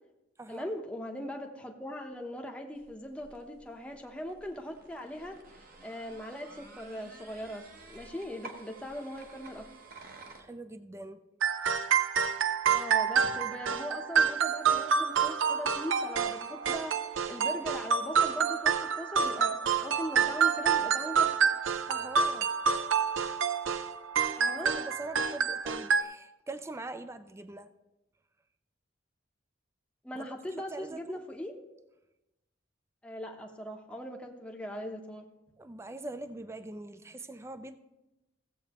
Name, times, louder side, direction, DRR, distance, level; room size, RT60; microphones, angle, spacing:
voice 1, 0.5-9.6 12.7-19.6 19.8-21.5 24.4-24.7 30.0-31.6 33.0-35.2, equal, 5° left, 1 dB, 0.8 m, -40 dB
sound 1, 2.8-10.4, right 3 dB, 50° right, 1.0 m, -52 dB
voice 2, 10.4-11.2 21.9-22.5 24.4-27.7 30.1-30.3 30.7-31.2 35.6-37.8, right 2 dB, 15° right, 11 dB, 0.4 m, -43 dB
sound 2, 11.4-26.0, right 6 dB, 85° right, 0.5 m, -28 dB
15.5 x 7.8 x 2.9 m, 0.98 s
head